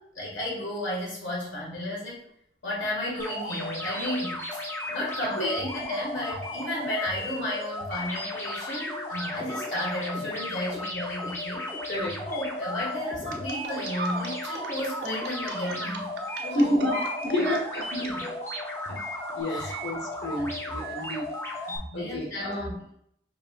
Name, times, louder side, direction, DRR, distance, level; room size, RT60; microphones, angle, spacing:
voice 1, 0.2-2.2 2.6-11.9 12.2-16.1 16.4-17.1 17.3-17.6 17.9-18.3 19.5-19.8 20.4-20.5 21.0-21.1 21.6-22.9, left 1 dB, 85° left, -5 dB, 1.5 m, -33 dB
sound 1, 3.2-21.8, left 1 dB, 15° left, 0.5 m, -35 dB
sound 2, 13.3-18.1 19.3-19.4, right 3 dB, 65° right, 0.5 m, -36 dB
voice 2, 16.5-17.0 17.2-17.8 18.9-21.3 21.5-21.6 21.9-22.7, left 1 dB, 65° left, -1 dB, 1.2 m, -29 dB
5.4 x 2.8 x 2.3 m, 0.71 s
head